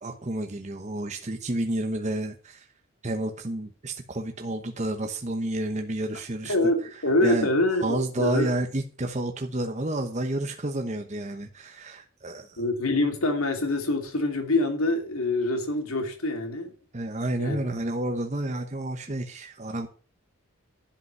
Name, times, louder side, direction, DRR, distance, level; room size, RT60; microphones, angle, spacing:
voice 1, 0.0-2.7 3.0-6.5 6.8-7.5 7.8-12.6 16.9-19.9, right 1 dB, 35° right, 1.0 m, -30 dB
voice 2, 6.4-8.5 12.6-16.7 17.4-17.6, left 2 dB, 85° left, 2.8 m, -25 dB
11.5 x 5.4 x 7.9 m
head